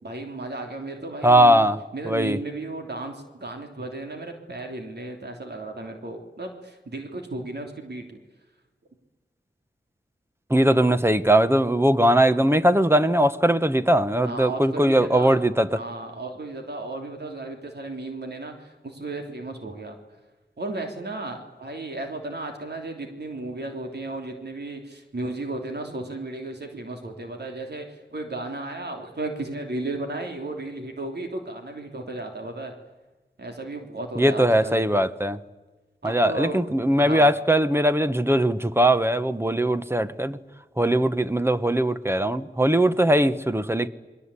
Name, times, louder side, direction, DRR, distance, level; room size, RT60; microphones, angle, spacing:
voice 1, 0.0-1.7 1.9-8.2 14.2-15.4 15.7-20.0 20.6-32.7 33.4-34.8 36.0-36.6 37.0-37.3, right 2 dB, 65° right, 3.2 m, -34 dB
voice 2, 1.2-1.8 2.0-2.4 10.5-15.7 34.2-35.4 36.0-40.4 40.8-43.9, right 1 dB, 15° right, 1.2 m, -20 dB
29.0 x 22.0 x 8.4 m
wide cardioid pair, 80°, 18 cm